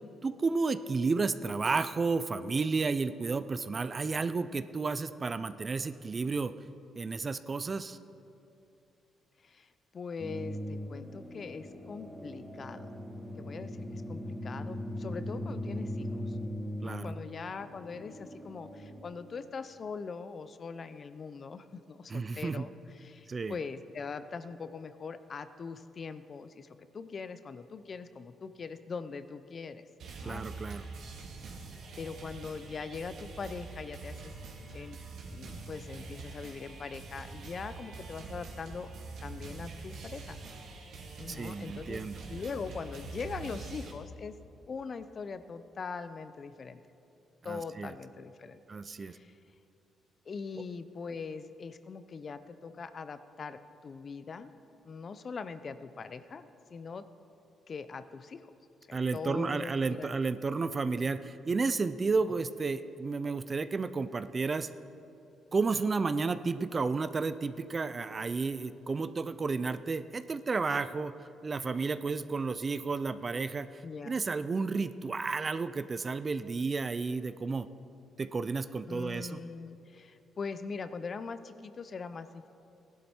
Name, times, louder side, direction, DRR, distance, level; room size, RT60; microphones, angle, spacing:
voice 1, 0.2-6.5 7.0-8.0 16.8-17.1 22.1-22.7 23.3-23.5 30.2-30.9 41.3-42.2 47.4-47.9 48.7-49.2 58.9-64.7 65.5-71.1 71.4-77.7 78.2-79.4, right 4 dB, 35° right, 13 dB, 0.4 m, -32 dB
voice 2, 9.4-12.9 13.4-16.4 16.8-26.7 26.9-29.8 30.2-30.9 32.0-34.3 34.7-35.0 35.3-38.9 39.2-40.4 41.2-42.0 42.3-44.3 44.7-46.8 47.4-48.6 49.0-49.3 50.3-54.5 54.8-57.0 57.7-58.5 58.9-60.2 62.3-62.4 63.2-63.4 73.8-74.2 78.9-82.5, left 5 dB, 45° left, 12 dB, 0.6 m, -42 dB
sound 1, 10.2-19.0, equal, 10° left, 1.8 m, -39 dB
sound 2, 30.0-43.9, right 3 dB, 75° right, 2.0 m, -45 dB
16.5 x 11.5 x 4.4 m, 2.7 s
cardioid pair, 90°, 0 cm